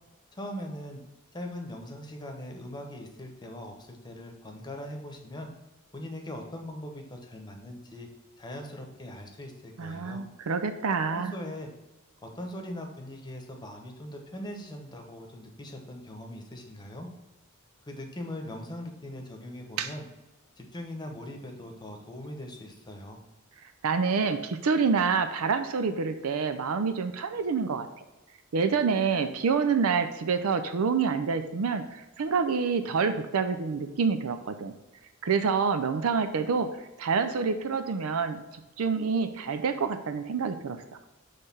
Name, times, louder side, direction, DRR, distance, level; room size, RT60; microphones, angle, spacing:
voice 1, 0.3-1.0 1.3-5.5 5.9-8.1 8.4-10.2 11.1-11.7 12.2-17.1 17.9-20.0 20.6-23.2, left 1 dB, 20° left, 3 dB, 1.0 m, -40 dB
voice 2, 9.8-11.3 19.8-19.9 23.8-27.9 28.5-34.7 35.2-38.4 38.8-40.8, right 5 dB, 80° right, 9 dB, 0.5 m, -27 dB
6.5 x 3.3 x 5.5 m, 1.1 s
head